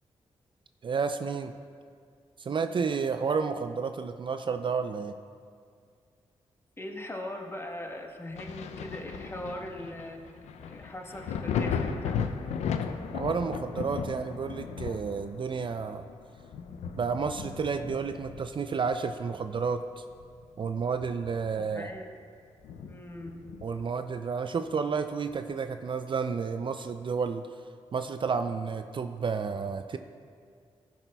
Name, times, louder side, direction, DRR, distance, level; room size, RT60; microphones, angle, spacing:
voice 1, 0.8-1.5 2.4-5.1 13.1-16.1 16.9-20.0 20.6-21.9 23.6-27.5 27.9-30.0, right 5 dB, 45° right, 8 dB, 0.4 m, -31 dB
voice 2, 6.8-10.2 10.7-12.2 21.6-22.1 22.8-23.4, left 1 dB, 20° left, 1 dB, 1.1 m, -40 dB
Thunder, 8.4-19.7 20.1-21.6 22.0-22.1 22.6-23.9 25.3-25.4, left 6 dB, 85° left, 0.4 m, -36 dB
15.5 x 6.0 x 2.3 m, 2.2 s
cardioid pair, 55°, 11 cm